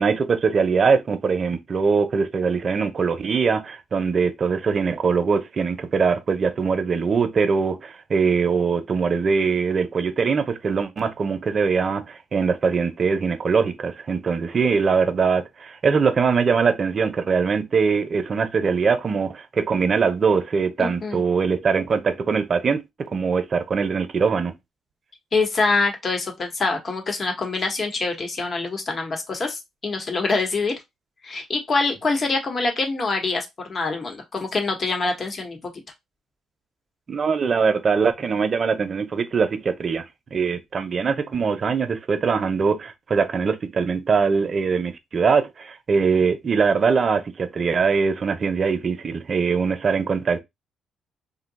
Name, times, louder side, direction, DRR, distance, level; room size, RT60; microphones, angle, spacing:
voice 1, 0.0-24.5 37.1-50.4, right 5 dB, 45° right, 0.6 m, -22 dB
voice 2, 20.8-21.2 25.3-30.7 31.2-35.6, left 3 dB, 40° left, 1.1 m, -25 dB
2.7 x 2.2 x 4.0 m
cardioid pair, 90°, 0 cm